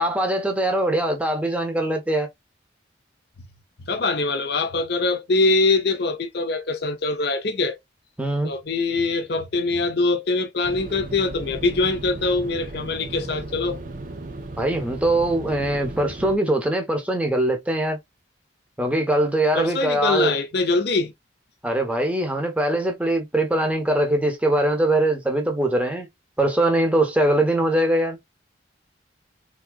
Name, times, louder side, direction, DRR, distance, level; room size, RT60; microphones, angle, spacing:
voice 1, 0.0-2.3 8.2-8.5 14.6-18.0 18.8-20.3 21.6-26.1 26.4-28.2, right 1 dB, 5° right, 0.8 m, -22 dB
voice 2, 3.8-7.8 8.4-13.8 19.5-21.1, left 3 dB, 55° left, 0.6 m, -23 dB
sound 1, 10.6-16.4, right 2 dB, 45° right, 0.6 m, -36 dB
3.6 x 2.7 x 2.2 m
head